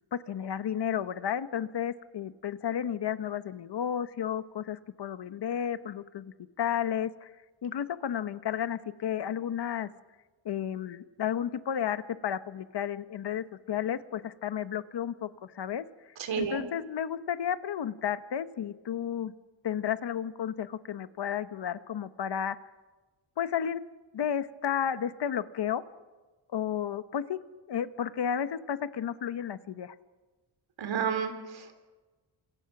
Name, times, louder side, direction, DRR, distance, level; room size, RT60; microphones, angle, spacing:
voice 1, 0.1-7.3 7.6-9.9 10.4-15.9 16.4-19.3 19.6-22.6 23.4-23.8 24.1-25.8 26.5-27.4 27.7-29.9, left 9 dB, 60° left, 12 dB, 1.1 m, -32 dB
voice 2, 16.2-16.6 30.8-31.7, right 7 dB, 75° right, 7 dB, 3.8 m, -31 dB
28.0 x 27.0 x 6.0 m, 1.3 s
wide cardioid pair, 135°, 46 cm